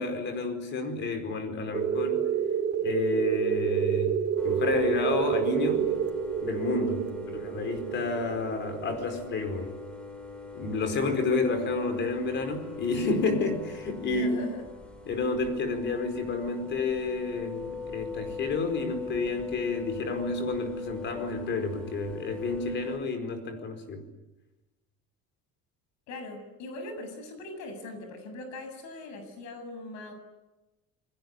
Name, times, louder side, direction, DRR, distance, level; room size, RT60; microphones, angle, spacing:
voice 1, 0.0-2.3 2.8-4.2 4.4-5.9 6.4-9.7 10.5-14.4 15.1-24.0, left 3 dB, 40° left, 8 dB, 4.7 m, -30 dB
sound 1, 1.7-10.1, right 8 dB, 35° right, 4.0 m, -29 dB
sound 2, 4.4-23.0, left 4 dB, 5° left, 4.1 m, -42 dB
voice 2, 14.0-14.6 26.1-30.1, left 2 dB, 70° left, 7 dB, 7.4 m, -40 dB
29.0 x 21.0 x 9.7 m, 1.0 s
cardioid pair, 175°, 29 cm